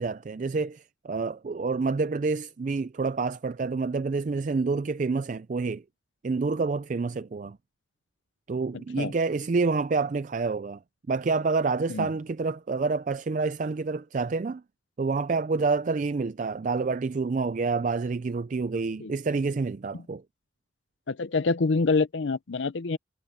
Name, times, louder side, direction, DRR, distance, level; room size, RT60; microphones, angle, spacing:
voice 1, 0.0-5.8 6.2-7.6 8.5-10.8 11.1-14.6 15.0-20.2, right 4 dB, 40° right, 0.4 m, -28 dB
voice 2, 21.1-23.0, left 4 dB, 70° left, 0.5 m, -26 dB
head